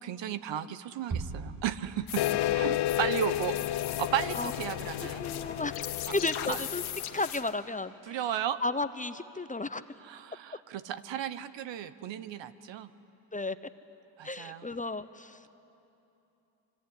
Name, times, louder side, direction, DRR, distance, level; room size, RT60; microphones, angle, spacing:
voice 1, 0.0-3.6 4.0-5.2 6.5-6.6 8.1-8.6 10.0-12.9 14.2-14.7, right 10 dB, 70° right, 13 dB, 1.2 m, -34 dB
Bass drum, 1.1-2.5, right 4 dB, 45° right, 2.4 m, -38 dB
sound 1, 2.1-7.5, left 10 dB, 75° left, 1.7 m, -40 dB
sound 2, 2.2-7.2, left 14 dB, 60° left, 0.6 m, -32 dB
voice 2, 2.4-2.8 4.3-4.5 5.2-6.8 7.1-8.2 8.6-9.8 13.3-13.6 14.2-15.5, left 2 dB, 15° left, 13 dB, 0.9 m, -34 dB
24.5 x 24.5 x 9.8 m, 2.9 s
supercardioid pair, 70°, 46 cm